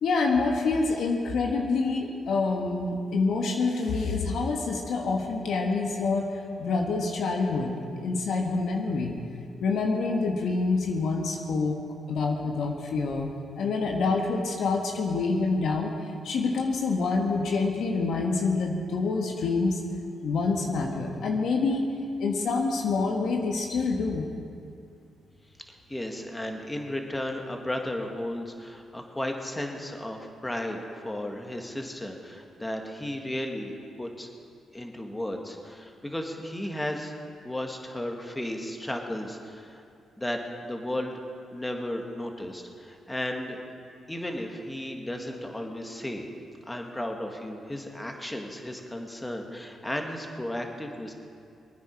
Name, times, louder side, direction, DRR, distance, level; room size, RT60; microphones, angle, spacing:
voice 1, 0.0-9.2 9.6-11.8 12.1-15.9 16.2-19.8 20.2-21.9 22.2-24.3, left 3 dB, 70° left, 1 dB, 1.5 m, -27 dB
voice 2, 25.7-34.3 34.7-37.1 37.4-39.8 40.2-41.1 41.5-43.6 44.1-46.3 46.7-51.1, left 1 dB, 15° left, 2 dB, 2.0 m, -34 dB
23.0 x 9.6 x 4.8 m, 2.5 s
hypercardioid pair, 50°, 0 cm